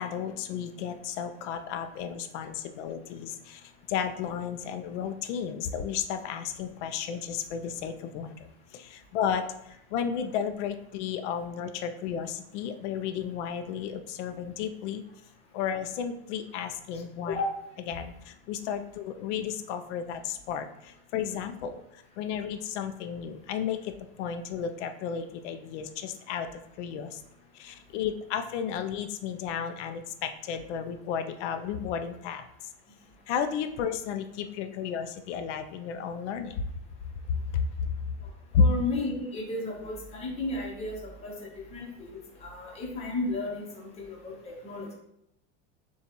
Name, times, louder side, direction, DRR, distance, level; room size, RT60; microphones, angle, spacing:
voice 1, 0.0-3.6 3.9-8.5 8.7-15.0 15.5-17.4 17.9-23.9 24.2-27.2 27.5-32.4 33.3-36.7 37.5-37.9 38.5-38.6, left 7 dB, 80° left, 8 dB, 0.5 m, -33 dB
voice 2, 38.6-42.1 42.4-44.9, left 3 dB, 20° left, -2 dB, 0.8 m, -34 dB
6.8 x 2.4 x 2.9 m, 0.80 s
supercardioid pair, 165°, 35 cm